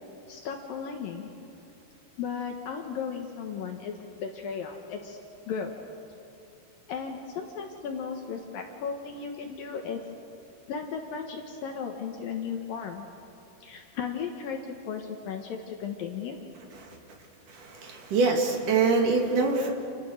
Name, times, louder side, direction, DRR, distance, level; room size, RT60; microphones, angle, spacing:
voice 1, 0.3-1.3 2.2-5.2 5.5-5.7 6.9-10.0 10.7-13.1 13.6-16.4, left 6 dB, 65° left, 3 dB, 2.8 m, -35 dB
voice 2, 17.5-19.7, right 4 dB, 55° right, 1 dB, 3.9 m, -24 dB
29.5 x 28.0 x 6.5 m, 2.7 s
omnidirectional pair, 4.7 m